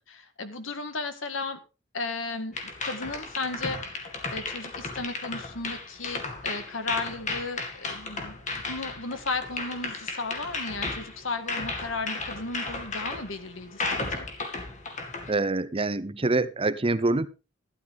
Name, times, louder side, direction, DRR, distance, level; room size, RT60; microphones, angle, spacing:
voice 1, 0.1-1.6 1.9-2.6 2.8-4.0 4.3-14.3, left 3 dB, 80° left, 8 dB, 1.9 m, -35 dB
sound 1, 2.5-15.3, left 3 dB, 40° left, 2.2 m, -34 dB
voice 2, 15.3-17.3, right 2 dB, 30° right, 15 dB, 0.7 m, -25 dB
12.5 x 12.0 x 3.6 m, 0.31 s
head